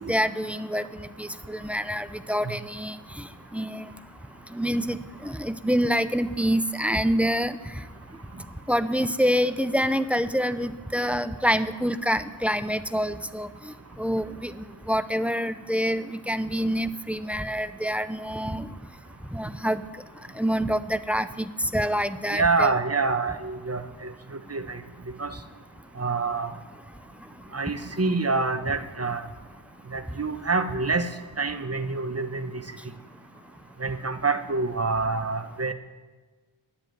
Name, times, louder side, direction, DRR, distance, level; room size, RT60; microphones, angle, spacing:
voice 1, 0.1-0.8 1.2-3.0 3.5-3.9 4.5-7.6 8.7-13.5 14.0-14.5 14.9-18.7 19.3-19.8 20.4-22.7, equal, 5° right, 13 dB, 0.5 m, -26 dB
voice 2, 22.3-23.8 24.5-24.8 25.2-25.3 26.0-26.5 27.5-29.2 29.9-31.1 31.4-32.5 33.8-35.7, right 3 dB, 30° right, 8 dB, 1.0 m, -26 dB
11.5 x 7.9 x 9.1 m, 1.4 s
wide cardioid pair, 50°, 50 cm